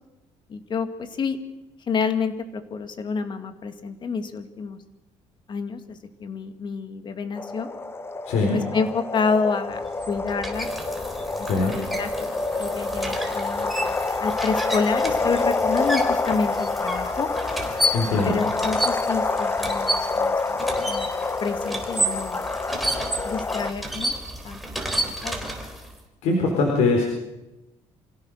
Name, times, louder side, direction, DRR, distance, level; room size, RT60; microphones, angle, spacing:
voice 1, 0.5-1.4 1.9-4.8 5.5-7.7 8.5-10.7 11.4-12.3 12.6-17.3 18.2-20.6 20.9-21.1 21.4-22.4 23.2-24.1 24.4-25.5, left 5 dB, 40° left, 8 dB, 2.3 m, -29 dB
sound 1, 7.4-23.7, left 3 dB, 20° left, 1.0 m, -27 dB
voice 2, 8.3-8.6 11.4-11.7 17.9-18.3 26.2-27.1, left 3 dB, 80° left, 0 dB, 4.4 m, -21 dB
sound 2, 9.7-26.0, right 1 dB, ahead, 3.9 m, -31 dB
26.0 x 16.5 x 6.6 m, 1.0 s
cardioid pair, 115°, 12 cm